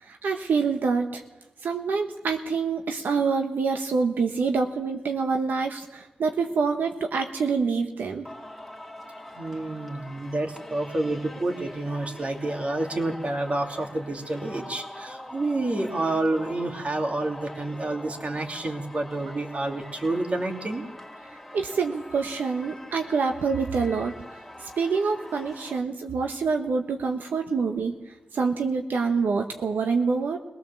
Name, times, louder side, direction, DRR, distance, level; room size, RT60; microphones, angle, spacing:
voice 1, 0.0-1.2 1.6-8.2 21.5-24.1 24.6-30.4, right 5 dB, 80° right, 4 dB, 1.2 m, -26 dB
Singing, 8.3-25.8, left 1 dB, ahead, 2.7 m, -43 dB
voice 2, 9.3-20.8, right 2 dB, 45° right, 3 dB, 2.9 m, -29 dB
22.0 x 18.0 x 7.1 m, 1.1 s
cardioid pair, 70°, 3 cm